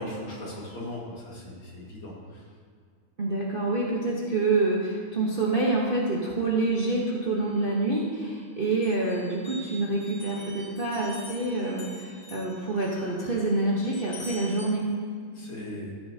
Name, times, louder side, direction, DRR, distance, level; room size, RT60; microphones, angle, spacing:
voice 1, 0.0-2.4 15.3-15.9, left 1 dB, 70° left, -4 dB, 2.8 m, -38 dB
voice 2, 3.2-14.9, right 2 dB, 40° right, -4 dB, 0.8 m, -27 dB
sound 1, 7.4-8.4 8.8-14.7, left 1 dB, 55° left, 2.6 m, -46 dB
14.0 x 7.2 x 2.8 m, 2.1 s
omnidirectional pair, 2.3 m